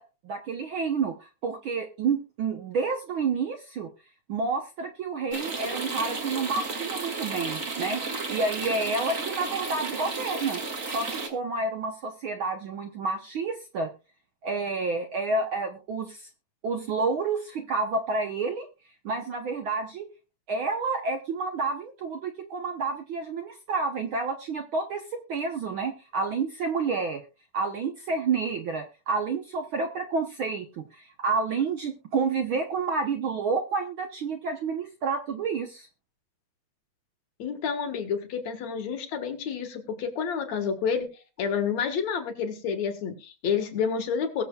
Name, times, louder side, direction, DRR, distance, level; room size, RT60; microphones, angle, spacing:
voice 1, 0.0-3.9 4.3-8.0 8.3-10.6 10.9-13.9 14.4-16.3 16.6-18.7 19.0-20.1 20.5-27.2 27.5-35.9, right 4 dB, 65° right, 5 dB, 1.3 m, -29 dB
sound 1, 5.3-11.3, right 3 dB, 35° right, 1.7 m, -33 dB
voice 2, 37.4-41.1 41.4-44.4, left 6 dB, 70° left, 5 dB, 2.8 m, -29 dB
21.5 x 7.1 x 2.3 m, 0.32 s
omnidirectional pair, 3.3 m